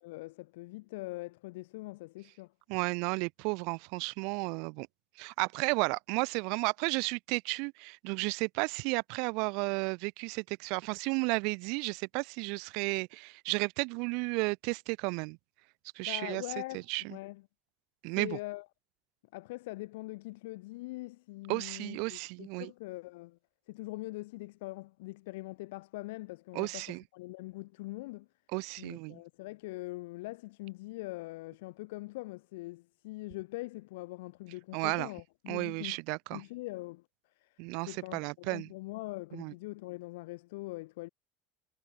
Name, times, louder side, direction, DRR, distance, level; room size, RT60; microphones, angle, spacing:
voice 1, 0.0-2.5 16.1-16.9 17.1-17.4 18.1-18.7 19.3-23.4 23.7-28.3 28.8-36.0 36.3-37.0 37.4-37.5 37.9-41.1, left 21 dB, 90° left, 2.0 m, -42 dB
voice 2, 2.7-4.9 5.2-15.4 15.9-16.4 16.7-17.2 18.0-18.4 21.5-22.7 26.5-27.0 28.5-29.2 34.7-35.1 35.5-36.4 37.6-38.7 39.3-39.5, right 33 dB, 60° right, 1.4 m, -33 dB
cardioid pair, 165°, 0 cm